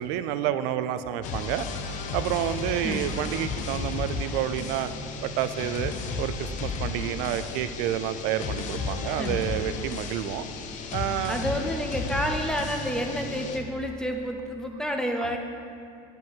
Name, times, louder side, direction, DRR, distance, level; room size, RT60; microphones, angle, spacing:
voice 1, 0.0-1.7 2.1-4.9 5.2-10.4 10.9-11.5 15.2-15.4, right 11 dB, 90° right, 11 dB, 0.4 m, -29 dB
sound 1, 1.2-13.6, left 4 dB, 45° left, 0.6 m, -33 dB
voice 2, 2.7-3.1 9.0-9.4 11.3-15.4, equal, 5° left, 3 dB, 0.4 m, -30 dB
7.6 x 5.4 x 5.6 m, 2.4 s
cardioid pair, 170°, 17 cm